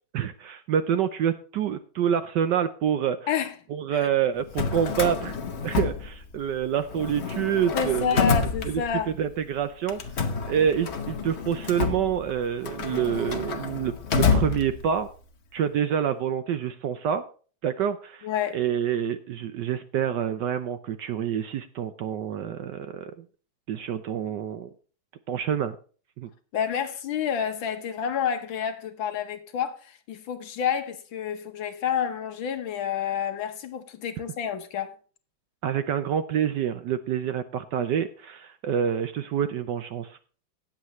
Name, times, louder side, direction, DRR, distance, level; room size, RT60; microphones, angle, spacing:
voice 1, 0.1-3.2 3.7-5.4 5.6-8.2 8.6-10.0 10.5-15.1 15.5-17.2 17.6-18.3 18.5-23.1 23.7-24.7 25.3-25.8 26.2-26.3 35.6-40.2, right 9 dB, 70° right, 1.1 m, -27 dB
Drawer open or close, 4.4-6.6 6.9-9.3 9.9-15.1, left 5 dB, 50° left, 0.8 m, -28 dB
voice 2, 7.7-9.1 18.2-18.6 26.5-35.0, left 8 dB, 70° left, 1.7 m, -29 dB
17.5 x 7.4 x 3.1 m
omnidirectional pair, 2.3 m